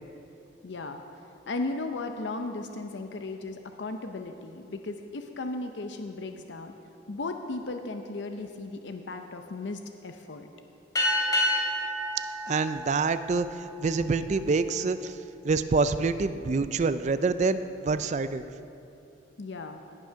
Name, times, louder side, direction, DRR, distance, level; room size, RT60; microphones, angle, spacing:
voice 1, 0.6-1.0 1.5-6.7 7.1-10.5 19.4-19.8, left 2 dB, 70° left, 6 dB, 0.6 m, -36 dB
sound 1, 10.9-13.9, equal, 20° left, 2.8 m, -29 dB
voice 2, 12.5-15.2 15.4-18.4, right 4 dB, 40° right, 12 dB, 0.4 m, -26 dB
17.0 x 6.1 x 5.7 m, 2.7 s
head